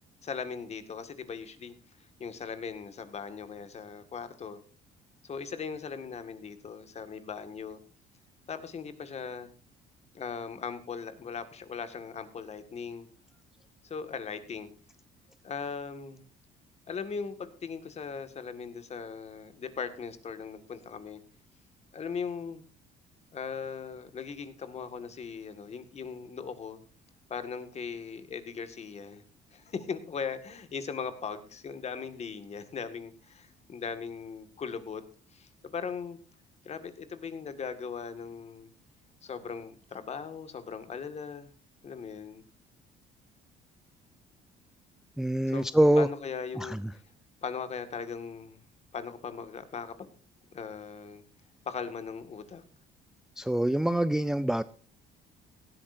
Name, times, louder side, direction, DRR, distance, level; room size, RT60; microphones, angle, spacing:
voice 1, 0.2-1.7 2.2-4.6 5.2-7.8 8.5-9.5 10.1-13.1 13.8-14.7 15.4-16.2 16.9-21.2 21.9-22.6 23.3-26.8 27.3-29.2 29.5-35.0 35.3-36.2 36.6-38.7 39.2-41.5 41.8-42.4 45.5-45.7 46.0-47.0 47.4-48.6 48.9-50.1 50.5-51.2 51.7-52.6, left 6 dB, 40° left, 10 dB, 1.9 m, -39 dB
voice 2, 45.2-46.1 46.6-46.8 53.4-54.6, right 1 dB, 5° right, 14 dB, 0.4 m, -25 dB
17.5 x 13.0 x 2.7 m, 0.39 s
cardioid pair, 110°, 17 cm